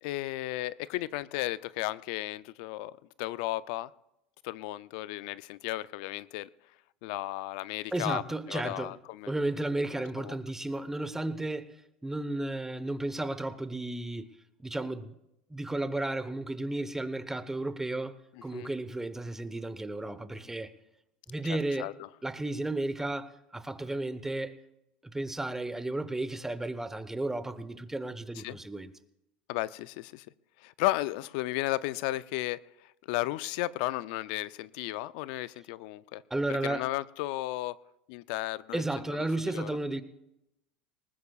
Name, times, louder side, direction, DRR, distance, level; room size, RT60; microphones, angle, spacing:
voice 1, 0.0-3.9 4.4-6.5 7.0-8.2 8.5-9.3 10.2-10.4 18.3-18.7 21.5-21.9 28.4-28.6 29.5-30.3 30.6-32.6 33.1-36.2 36.6-37.8 38.1-38.8 39.1-39.7, left 17 dB, 65° left, 0.4 m, -34 dB
voice 2, 7.9-8.9 9.3-11.8 12.0-14.2 14.6-15.1 15.5-18.1 18.4-20.7 21.3-21.9 22.2-24.5 25.1-28.9 36.3-36.9 38.7-40.0, right 2 dB, 10° right, 1.0 m, -33 dB
19.5 x 19.5 x 2.4 m
hypercardioid pair, 95°, 5 cm